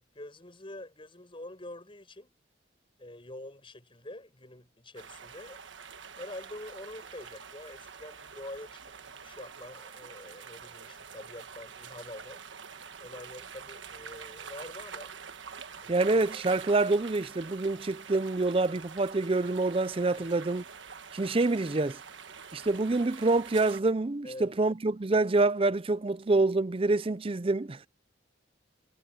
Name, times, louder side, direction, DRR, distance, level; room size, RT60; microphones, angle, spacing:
voice 1, 0.0-2.3 3.0-5.6 6.2-12.4 13.0-15.1 15.8-16.1 20.1-20.3 24.2-24.5, left 1 dB, 30° left, 7.2 m, -46 dB
sound 1, 5.0-23.8, right 6 dB, 85° right, 1.4 m, -46 dB
voice 2, 15.9-20.6 21.1-22.0 22.5-27.9, right 2 dB, 30° right, 0.5 m, -26 dB
head